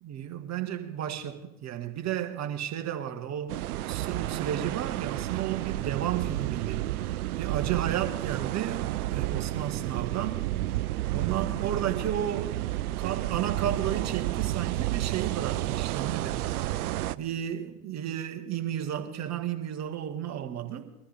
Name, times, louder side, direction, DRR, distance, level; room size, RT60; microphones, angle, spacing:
voice 1, 0.0-3.6 3.8-6.9 7.4-10.4 11.1-12.6 13.0-16.4 17.2-20.9, right 10 dB, 35° right, 1.8 m, -33 dB
sound 1, 3.5-17.1, right 15 dB, 75° right, 0.7 m, -31 dB
22.0 x 13.5 x 3.5 m
hypercardioid pair, 95°, 45 cm